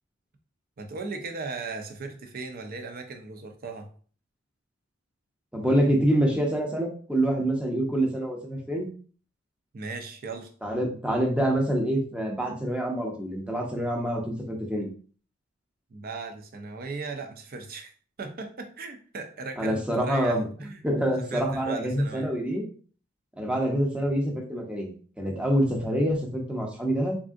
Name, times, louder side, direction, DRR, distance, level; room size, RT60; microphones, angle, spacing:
voice 1, 0.8-3.9 9.7-10.5 15.9-17.9 18.2-20.8 21.2-22.3, right 4 dB, 45° right, 5 dB, 0.5 m, -37 dB
voice 2, 5.5-8.9 10.6-14.9 19.6-20.5 20.8-22.6 23.4-27.2, right 1 dB, 5° right, 0 dB, 0.7 m, -26 dB
3.5 x 2.5 x 2.4 m, 0.42 s
head